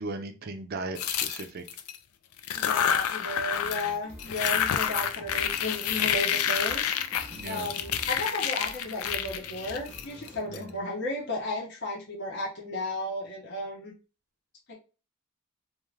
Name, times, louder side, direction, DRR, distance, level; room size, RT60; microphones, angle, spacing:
voice 1, 0.0-1.6 3.6-3.9 7.3-7.7 10.5-10.8, right 2 dB, 45° right, 7 dB, 0.4 m, -37 dB
sound 1, 1.0-2.0 2.4-3.9 4.2-10.6, left 9 dB, 85° left, 0.3 m, -29 dB
voice 2, 2.5-7.0 7.4-13.9 14.7-14.8, left 1 dB, 50° left, -4 dB, 0.7 m, -34 dB
sound 2, 4.0-10.4, equal, 5° left, 0.6 m, -48 dB
2.4 x 2.3 x 3.2 m, 0.33 s
head